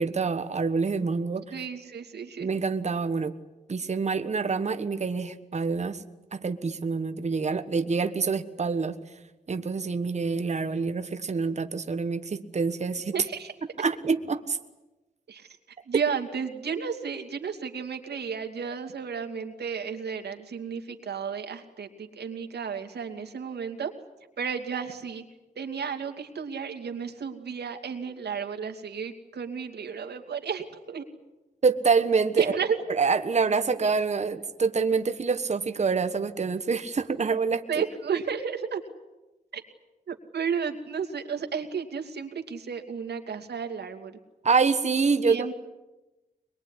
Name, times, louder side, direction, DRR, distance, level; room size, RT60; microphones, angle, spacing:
voice 1, 0.0-1.5 2.4-3.3 3.7-6.0 6.3-9.0 9.5-13.1 13.8-14.6 31.6-32.5 32.9-37.8 44.4-45.5, right 5 dB, 40° right, 8 dB, 1.4 m, -26 dB
voice 2, 1.5-2.5 13.1-13.5 15.3-15.5 15.9-23.9 24.4-25.2 25.6-31.0 32.4-32.8 37.7-38.8 39.5-39.6 40.1-44.1 45.2-45.5, right 6 dB, 75° right, 5 dB, 2.6 m, -32 dB
23.0 x 22.5 x 9.9 m, 1.1 s
wide cardioid pair, 95°, 17 cm